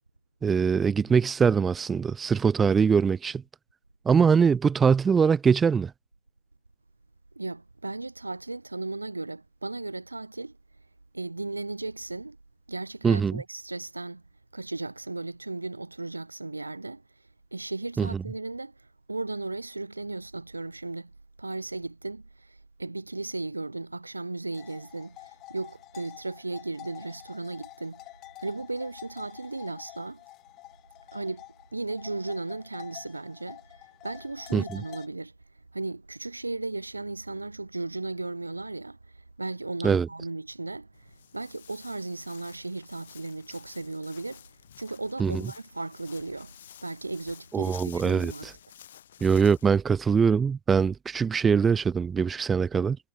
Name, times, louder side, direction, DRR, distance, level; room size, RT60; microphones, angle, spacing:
voice 1, 0.4-3.4 4.1-5.9 13.0-13.4 18.0-18.1 34.5-34.8 39.8-40.1 45.2-45.4 47.5-48.3 49.2-53.0, right 6 dB, 20° right, 0.3 m, -22 dB
voice 2, 7.3-10.6 11.1-12.4 12.7-14.2 14.5-17.0 17.5-18.7 19.1-21.1 21.4-28.0 28.4-30.2 31.1-31.4 31.7-33.6 34.0-35.3 35.7-41.0 41.3-44.4 44.8-46.5 46.8-48.5, right 2 dB, 80° right, 1.5 m, -36 dB
sound 1, 24.5-35.1, left 18 dB, 40° left, 5.3 m, -48 dB
Walk footsteps, 40.9-49.7, left 10 dB, 60° left, 2.3 m, -51 dB
figure-of-eight pair, 90°, 0 cm